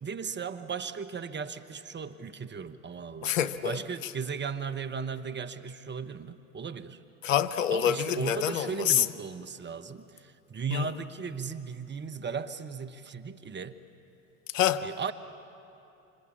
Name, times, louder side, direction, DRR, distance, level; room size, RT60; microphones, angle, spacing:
voice 1, 0.0-3.4 3.6-7.0 7.7-13.8 14.8-15.1, right 6 dB, 30° right, 1.3 m, -36 dB
voice 2, 3.2-3.8 7.2-9.1 10.7-10.9 14.5-14.9, left 10 dB, 90° left, 0.8 m, -26 dB
26.5 x 26.5 x 7.3 m
hypercardioid pair, 70°, 37 cm